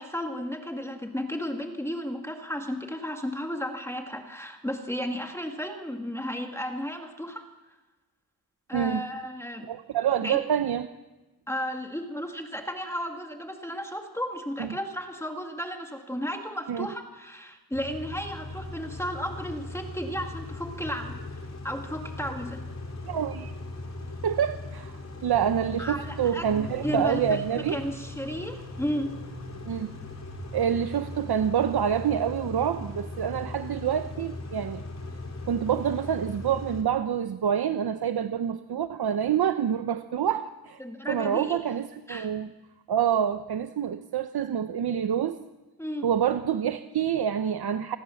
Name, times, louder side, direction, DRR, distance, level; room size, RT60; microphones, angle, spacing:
voice 1, 0.0-7.5 8.7-9.7 10.2-10.4 11.5-22.6 25.8-29.2 40.8-41.6 42.1-42.3 45.8-46.1, equal, 5° left, 3 dB, 1.9 m, -34 dB
voice 2, 8.7-9.0 9.7-10.9 14.6-14.7 16.7-16.9 23.0-23.5 24.2-24.9 25.2-27.8 29.7-29.9 30.5-34.8 35.5-40.8 41.1-42.5 42.9-45.4 46.0-48.0, right 9 dB, 75° right, 9 dB, 0.9 m, -27 dB
Car / Idling / Accelerating revving vroom, 17.7-36.8, left 2 dB, 45° left, 4.1 m, -39 dB
27.0 x 20.5 x 7.2 m, 1.1 s
wide cardioid pair, 160°, 38 cm